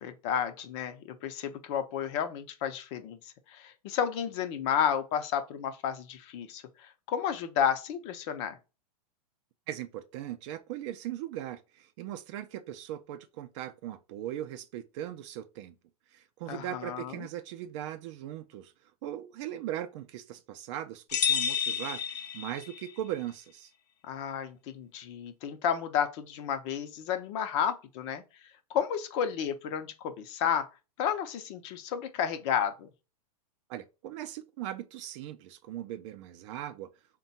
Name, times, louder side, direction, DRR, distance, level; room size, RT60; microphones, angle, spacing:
voice 1, 0.0-3.2 3.5-8.6 16.5-17.3 24.0-28.2 28.7-30.7 31.0-32.9, left 8 dB, 45° left, 0.6 m, -32 dB
voice 2, 9.7-15.7 16.1-18.7 19.0-23.7 33.7-36.9, right 12 dB, 50° right, 0.5 m, -39 dB
sound 1, 21.1-22.9, left 8 dB, 85° left, 0.6 m, -30 dB
3.5 x 2.2 x 4.0 m
hypercardioid pair, 130°, 20 cm